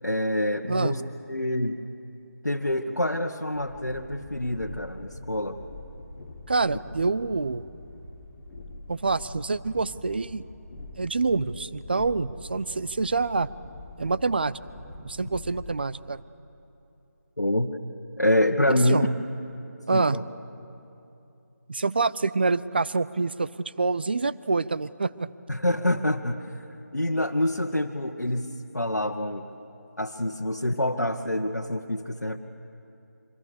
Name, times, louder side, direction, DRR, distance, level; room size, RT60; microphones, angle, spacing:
voice 1, 0.0-1.0 1.3-1.8 2.4-5.6 17.4-17.7 18.2-19.1 19.9-20.2 25.5-26.6 26.9-29.5 30.0-32.4, left 1 dB, 80° left, 1 dB, 1.4 m, -26 dB
Train, 3.5-15.8, left 2 dB, 10° left, 1.7 m, -44 dB
voice 2, 6.5-7.6 8.9-10.4 11.0-13.5 14.0-14.6 15.0-16.2 18.7-19.1 19.9-20.2 21.7-23.5 23.8-25.3, right 3 dB, 35° right, 16 dB, 0.6 m, -26 dB
26.5 x 24.5 x 6.9 m, 2.8 s
figure-of-eight pair, 160°, 9 cm